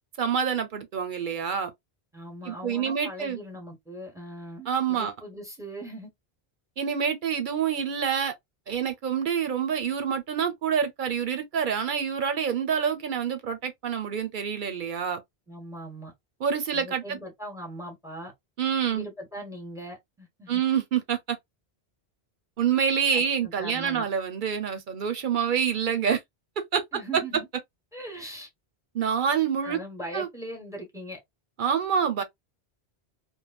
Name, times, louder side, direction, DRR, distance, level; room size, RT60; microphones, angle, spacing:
voice 1, 0.2-1.7 2.5-3.4 4.7-5.1 6.8-8.3 8.7-15.2 16.4-17.2 18.6-19.1 20.5-21.4 22.6-26.2 26.7-26.8 27.1-27.2 28.9-29.8 30.1-30.3 31.6-32.2, right 7 dB, 60° right, 0.6 m, -27 dB
voice 2, 2.1-6.1 15.5-16.1 16.7-18.3 18.9-20.6 23.1-24.0 26.9-27.5 27.9-28.5 29.6-31.2, right 1 dB, 5° right, 1.0 m, -40 dB
3.1 x 2.0 x 2.3 m
omnidirectional pair, 1.1 m